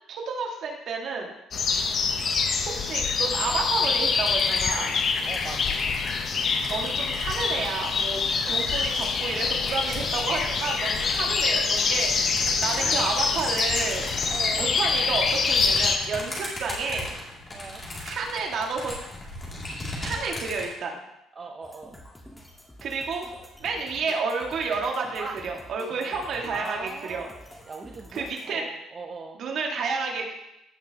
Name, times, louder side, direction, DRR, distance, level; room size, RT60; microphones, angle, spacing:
voice 1, 0.1-1.3 2.2-4.9 6.7-8.2 8.5-14.1 14.5-17.2 18.1-18.9 20.0-21.0 22.8-23.3 23.6-27.2 28.1-28.7 29.4-30.3, right 4 dB, 60° right, 0 dB, 2.0 m, -30 dB
sound 1, 1.5-16.0, left 5 dB, 45° left, 0.9 m, -25 dB
sound 2, 3.5-8.3 8.8-20.7, left 1 dB, 25° left, 2.7 m, -38 dB
voice 2, 5.2-5.8 8.4-8.9 12.7-13.0 14.3-14.7 17.5-17.8 21.3-22.0 25.2-25.4 26.5-27.3 27.6-29.4, right 4 dB, 30° right, 2 dB, 0.7 m, -39 dB
sound 3, 21.6-28.5, left 1 dB, 10° left, 1.6 m, -48 dB
16.0 x 5.7 x 2.9 m, 0.88 s
cardioid pair, 125°, 0 cm